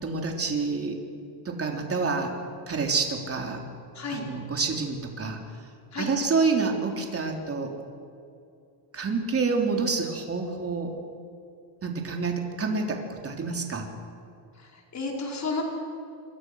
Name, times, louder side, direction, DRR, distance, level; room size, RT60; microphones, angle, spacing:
voice 1, 0.0-1.0 1.5-2.4 2.7-3.6 4.1-5.4 6.0-7.7 8.9-10.9 11.8-13.9, right 4 dB, 30° right, 2 dB, 3.6 m, -28 dB
voice 2, 3.9-4.3 5.9-6.1 14.6-15.6, left 3 dB, 35° left, 0 dB, 5.0 m, -32 dB
26.5 x 23.0 x 6.4 m, 2.5 s
cardioid pair, 135°, 48 cm